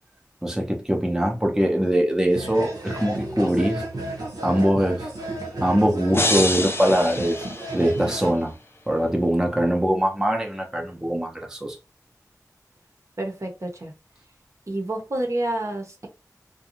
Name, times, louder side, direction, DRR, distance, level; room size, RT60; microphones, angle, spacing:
voice 1, 0.4-3.8 4.4-5.1 5.6-7.4 7.7-8.5 8.9-11.8, equal, 10° right, 0.6 m, -22 dB
sound 1, 2.3-8.3, right 2 dB, 80° right, 0.9 m, -33 dB
sound 2, 6.1-8.3, left 1 dB, 35° left, 0.6 m, -27 dB
voice 2, 13.2-13.9 14.7-16.1, right 1 dB, 50° right, 0.8 m, -28 dB
2.6 x 2.2 x 2.9 m
wide cardioid pair, 45°, 7 cm